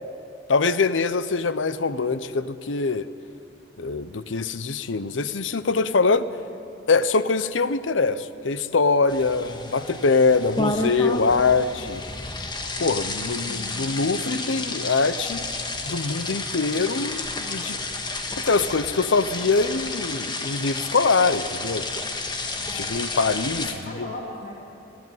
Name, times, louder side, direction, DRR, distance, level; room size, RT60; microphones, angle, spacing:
voice 1, 0.5-3.1 3.8-6.3 6.9-12.0 12.8-15.4 15.8-17.8 18.4-21.9 22.7-24.1, left 4 dB, 90° left, 14 dB, 0.7 m, -23 dB
sound 1, 9.1-23.7, left 2 dB, 25° left, 1.6 m, -31 dB
voice 2, 23.6-24.5, left 2 dB, 50° left, -3 dB, 2.6 m, -38 dB
20.0 x 15.0 x 9.3 m, 2.7 s
head